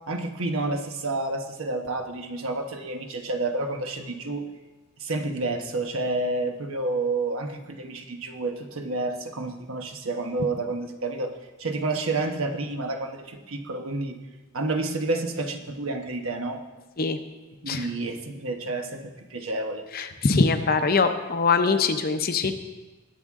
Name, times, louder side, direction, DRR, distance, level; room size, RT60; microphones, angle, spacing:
voice 1, 0.1-4.5 5.0-14.2 14.5-16.6 17.6-19.9, right 2 dB, 75° right, 4 dB, 1.2 m, -29 dB
voice 2, 19.9-22.5, left 4 dB, 45° left, 8 dB, 0.7 m, -23 dB
19.5 x 7.6 x 3.7 m, 1.2 s
head